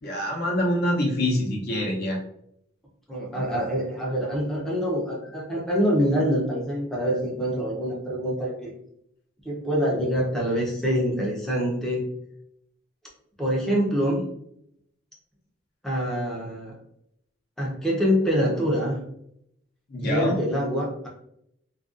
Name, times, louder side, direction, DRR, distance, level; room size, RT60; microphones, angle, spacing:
voice 1, 0.0-2.2 3.3-3.4 19.9-20.4, left 1 dB, 50° left, -2 dB, 0.5 m, -25 dB
voice 2, 3.1-8.7 9.4-12.1 13.4-14.3 15.8-16.7 17.6-19.0 20.0-21.1, equal, ahead, -4 dB, 0.5 m, -25 dB
2.5 x 2.2 x 2.4 m, 0.74 s
head